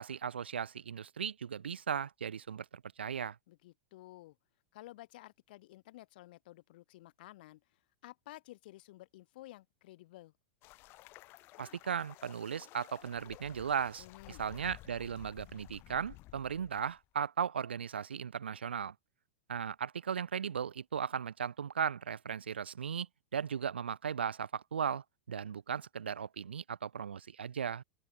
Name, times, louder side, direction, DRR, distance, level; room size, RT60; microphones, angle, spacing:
voice 1, 0.0-2.6 3.0-3.4 11.6-18.9 19.5-27.8, right 7 dB, 75° right, 1.3 m, -37 dB
voice 2, 3.5-4.4 4.7-10.3 14.0-14.4, left 17 dB, 55° left, 5.5 m, -53 dB
sound 1, 10.6-17.0, left 19 dB, 40° left, 4.3 m, -54 dB
open air
figure-of-eight pair, 95°, 6 cm